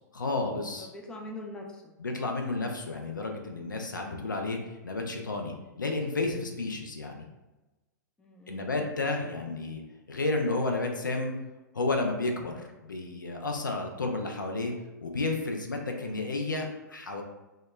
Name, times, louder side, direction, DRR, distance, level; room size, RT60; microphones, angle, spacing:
voice 1, 0.1-0.9 2.0-7.2 8.5-9.8 10.1-11.3 11.7-14.7 15.0-17.2, left 2 dB, 85° left, 3 dB, 0.4 m, -31 dB
voice 2, 0.8-1.9 8.2-8.7 16.0-16.2, left 1 dB, 10° left, 0 dB, 0.4 m, -43 dB
2.1 x 2.1 x 3.1 m, 1.1 s
figure-of-eight pair, 105°, 10 cm